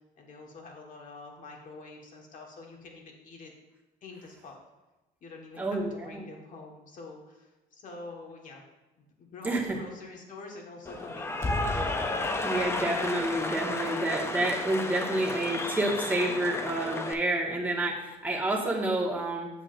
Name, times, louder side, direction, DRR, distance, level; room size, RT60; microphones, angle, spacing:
voice 1, 0.2-3.5 4.0-4.6 5.2-8.6 9.0-11.8, left 3 dB, 50° left, 0 dB, 1.6 m, -46 dB
voice 2, 5.6-6.3 9.4-9.8 12.4-19.5, right 1 dB, 10° right, -3 dB, 1.6 m, -29 dB
Cheering / Applause, 10.9-17.1, left 2 dB, 15° left, 0.5 m, -32 dB
8.1 x 7.3 x 2.6 m, 1.1 s
cardioid pair, 110°, 17 cm